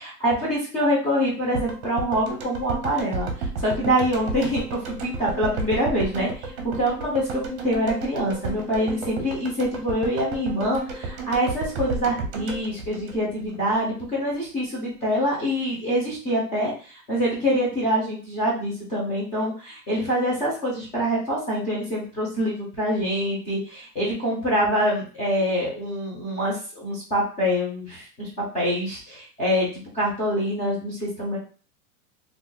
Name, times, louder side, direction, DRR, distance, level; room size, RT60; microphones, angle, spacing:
voice 1, 0.0-3.3 3.6-16.7 17.1-28.3 28.5-29.7 29.9-31.4, equal, 15° left, -6 dB, 0.7 m, -25 dB
sound 1, 1.5-13.7 14.0-14.1, right 4 dB, 50° right, 0.8 m, -32 dB
2.6 x 2.0 x 3.8 m, 0.38 s
supercardioid pair, 165°, 44 cm